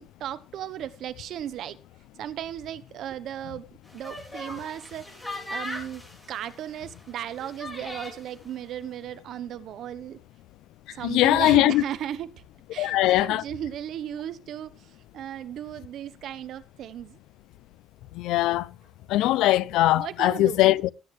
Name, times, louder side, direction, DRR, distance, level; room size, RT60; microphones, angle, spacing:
voice 1, 0.0-1.8 2.2-3.7 3.9-6.0 6.3-10.2 10.9-12.3 12.7-17.2 19.9-20.6, right 10 dB, 60° right, 0.9 m, -36 dB
sound 1, 3.9-8.3, left 1 dB, 10° left, 4.9 m, -39 dB
voice 2, 11.0-11.8 12.8-13.4 18.1-18.7 19.1-20.9, left 16 dB, 85° left, 0.5 m, -21 dB
17.5 x 8.7 x 3.2 m
cardioid pair, 140°, 0 cm